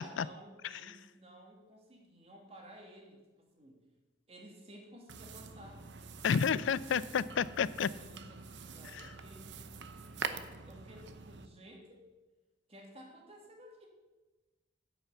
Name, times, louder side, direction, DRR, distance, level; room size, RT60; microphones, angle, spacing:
voice 1, 0.0-3.8 4.3-5.9 7.9-12.0 12.7-13.9, right 1 dB, 35° right, 1 dB, 2.0 m, -55 dB
sound 1, 5.1-11.5, right 5 dB, 70° right, 0.7 m, -45 dB
voice 2, 6.2-7.9 8.9-9.0, left 7 dB, 90° left, 18 dB, 0.4 m, -30 dB
9.6 x 5.7 x 8.1 m, 1.2 s
head